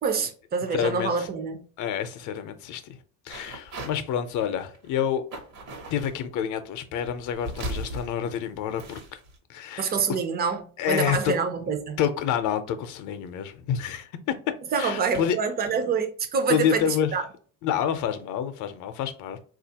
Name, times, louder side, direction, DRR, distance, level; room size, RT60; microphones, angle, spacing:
voice 1, 0.0-1.6 9.8-12.0 14.7-16.8 17.1-17.2, right 5 dB, 30° right, 0.5 m, -26 dB
voice 2, 0.7-1.3 1.8-3.0 3.3-5.2 5.9-9.2 9.5-9.9 10.8-11.3 12.0-14.3 14.8-15.4 16.5-17.1 17.6-19.4, left 9 dB, 60° left, 0.6 m, -28 dB
sound 1, 3.3-4.0 4.3-4.9 5.3-6.2 7.0-9.3, right 1 dB, 65° right, 1.1 m, -37 dB
3.9 x 2.4 x 2.7 m
cardioid pair, 155°, 34 cm